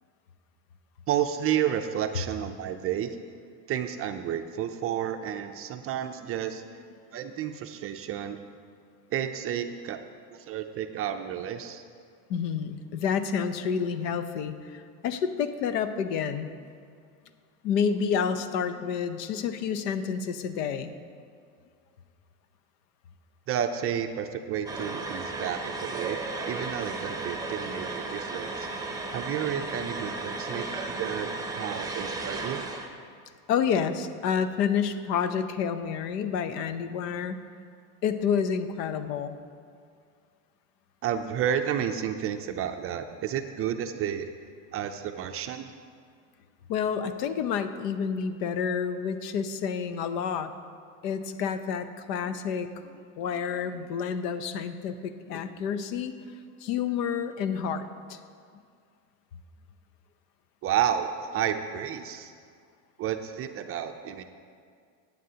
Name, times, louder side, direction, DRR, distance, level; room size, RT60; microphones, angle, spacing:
voice 1, 1.1-3.2 3.7-6.6 7.1-8.4 9.1-10.0 10.3-11.8 23.5-26.2 26.5-28.7 29.1-31.3 31.5-32.6 41.0-44.3 44.7-45.7 60.6-62.3 63.0-64.2, right 9 dB, 30° right, 7 dB, 0.4 m, -31 dB
voice 2, 12.3-16.5 17.6-20.9 30.3-30.4 33.5-37.4 38.0-39.4 46.7-50.5 51.0-56.1 56.6-58.2, left 7 dB, 80° left, 11 dB, 0.8 m, -29 dB
sound 1, 24.7-32.9, right 3 dB, 10° right, 0.7 m, -34 dB
14.5 x 9.1 x 2.8 m, 2.2 s
supercardioid pair, 115°, 48 cm